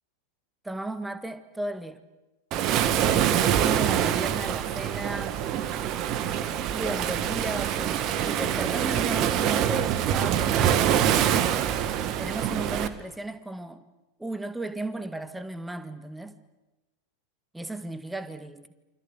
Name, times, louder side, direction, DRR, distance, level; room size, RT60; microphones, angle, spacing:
voice 1, 0.6-2.0 3.0-5.4 6.7-10.4 12.2-13.8 14.2-16.4 17.5-18.6, right 2 dB, 5° right, 1.8 m, -35 dB
Waves surf, 2.5-12.9, right 10 dB, 35° right, 1.9 m, -25 dB
28.5 x 25.5 x 8.2 m
figure-of-eight pair, 90°, 0 cm